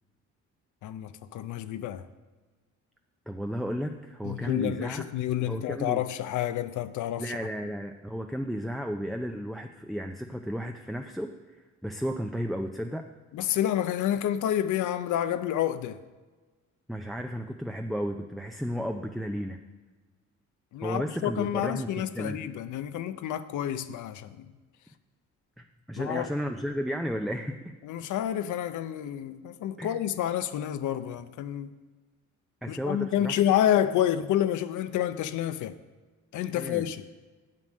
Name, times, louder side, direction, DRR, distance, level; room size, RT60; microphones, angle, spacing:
voice 1, 0.8-2.1 4.2-7.4 13.3-16.0 20.7-24.5 26.0-26.3 27.8-31.7 32.7-35.8 36.3-37.1, left 11 dB, 75° left, 0.6 m, -29 dB
voice 2, 3.3-5.0 5.4-6.0 7.2-11.3 11.8-13.1 16.9-19.6 20.8-22.4 25.6-27.6 29.8-30.0 32.6-33.4 36.5-36.9, equal, ahead, 0.5 m, -33 dB
7.6 x 7.5 x 6.3 m
cardioid pair, 90°, 30 cm